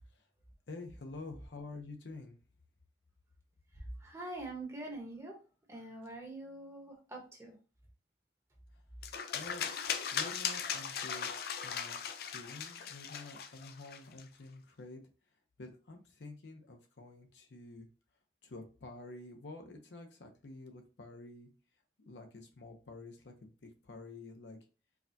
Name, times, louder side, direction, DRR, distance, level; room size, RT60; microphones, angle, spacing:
voice 1, 0.7-2.4 9.3-9.6 10.1-15.0 15.6-17.9 18.4-21.5 22.0-24.6, left 2 dB, 90° left, 4 dB, 0.7 m, -49 dB
voice 2, 4.0-5.4 5.7-7.6, right 2 dB, 15° right, 0 dB, 0.9 m, -44 dB
sound 1, 9.0-14.2, left 7 dB, 60° left, 0.4 m, -38 dB
4.7 x 2.3 x 2.7 m, 0.35 s
head